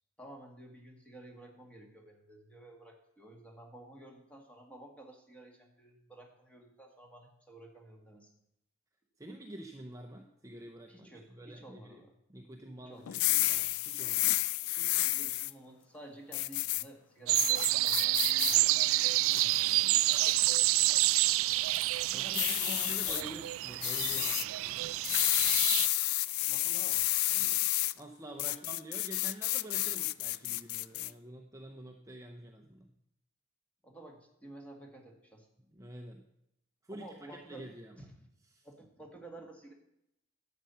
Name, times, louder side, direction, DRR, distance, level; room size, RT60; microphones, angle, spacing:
voice 1, 0.2-8.3 10.9-12.1 12.8-13.2 14.8-18.9 19.2-19.5 22.1-23.3 26.5-27.0 28.3-28.6 33.8-35.5 36.9-37.7 38.0-38.1 38.6-39.7, right 1 dB, 5° left, 1 dB, 1.8 m, -52 dB
voice 2, 9.2-12.0 12.3-14.4 19.3-20.1 22.1-25.2 27.3-27.7 28.0-32.9 35.7-36.3 36.8-38.1 38.5-38.7, right 1 dB, 15° right, 3 dB, 0.7 m, -48 dB
sound 1, 13.1-15.5 16.3-16.8 17.3-18.6 19.0-19.6 20.2-20.5 22.3-23.2 23.8-24.4 25.0-27.9 28.4-31.1, left 17 dB, 90° left, 0.4 m, -30 dB
sound 2, 17.3-25.9, right 18 dB, 75° right, 0.3 m, -28 dB
11.0 x 7.7 x 5.6 m, 0.80 s
head